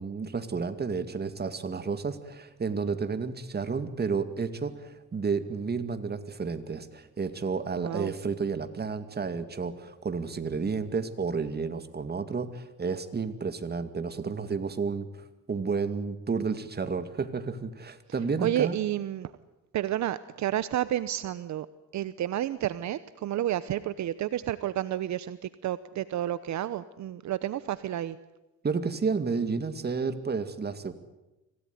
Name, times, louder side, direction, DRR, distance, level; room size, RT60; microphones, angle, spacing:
voice 1, 0.0-15.1 15.5-18.8 28.6-30.9, right 5 dB, 35° right, 10 dB, 2.2 m, -31 dB
voice 2, 7.8-8.1 18.4-19.3 19.7-21.7 21.9-28.2, right 12 dB, 70° right, 15 dB, 0.9 m, -30 dB
25.5 x 17.0 x 9.5 m, 1.0 s
cardioid pair, 90°, 30 cm